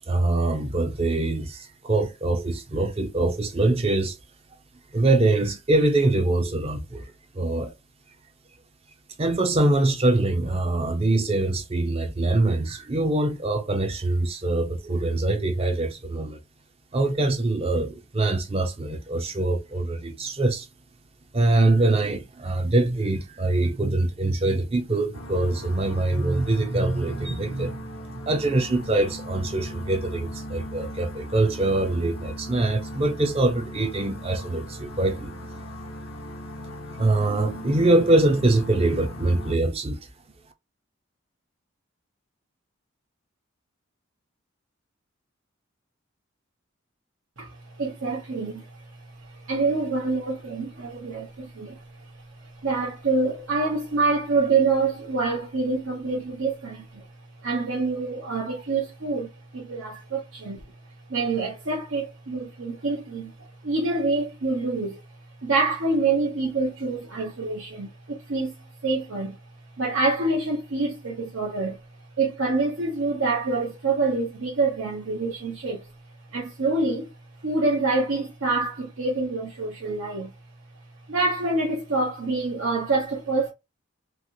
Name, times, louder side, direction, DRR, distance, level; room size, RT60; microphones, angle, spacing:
voice 1, 0.1-4.2 4.9-7.7 9.2-16.4 16.9-20.7 21.3-27.8 28.1-35.3 37.0-40.1, right 2 dB, 30° right, 0.5 m, -23 dB
sound 1, 25.1-39.6, equal, 80° left, 0.7 m, -38 dB
voice 2, 47.4-48.9 49.2-51.8 52.6-57.0 57.4-60.6 61.1-63.3 63.6-65.0 65.4-68.5 68.8-69.4 69.8-71.8 72.2-75.9 76.3-77.1 77.4-80.3 81.1-83.5, right 3 dB, 80° right, 0.9 m, -26 dB
3.1 x 2.9 x 2.6 m
head